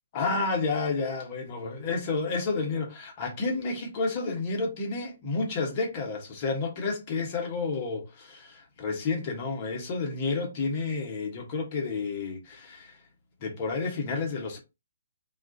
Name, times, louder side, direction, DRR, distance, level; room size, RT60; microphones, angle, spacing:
voice 1, 0.1-12.9 13.4-14.6, left 4 dB, 35° left, 0.9 m, -30 dB
2.4 x 2.3 x 2.5 m
figure-of-eight pair, 130°, 0 cm